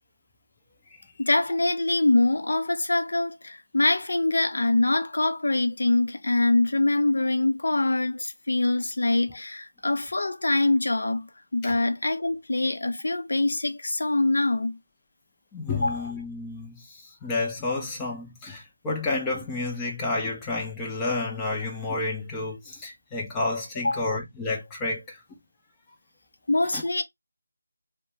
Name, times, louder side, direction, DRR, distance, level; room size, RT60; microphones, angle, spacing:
voice 1, 1.2-14.8 15.8-16.0 23.8-24.1 26.5-27.0, left 2 dB, 65° left, 0.6 m, -24 dB
voice 2, 15.5-25.2 26.7-26.8, left 3 dB, 10° left, 0.5 m, -30 dB
2.5 x 2.1 x 3.0 m
figure-of-eight pair, 175°, 0 cm